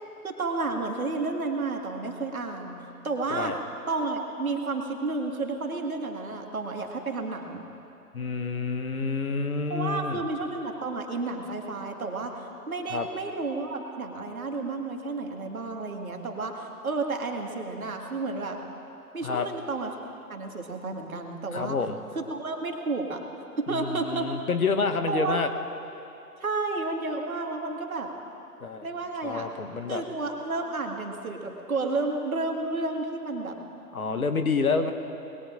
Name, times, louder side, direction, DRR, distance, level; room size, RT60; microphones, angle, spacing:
voice 1, 0.2-2.8 3.0-3.5 3.9-7.6 9.7-18.6 19.1-20.0 20.3-21.8 22.2-23.2 23.6-24.3 25.1-25.4 26.4-28.1 28.8-29.5 29.9-33.6 34.6-34.9, right 3 dB, 60° right, 2 dB, 1.9 m, -31 dB
voice 2, 8.1-10.2 12.9-13.1 19.2-19.5 21.5-22.0 23.7-25.5 28.6-28.9 29.2-30.0 33.9-34.9, left 4 dB, 65° left, 7 dB, 1.1 m, -28 dB
27.0 x 20.5 x 2.6 m, 2.9 s
figure-of-eight pair, 140°, 47 cm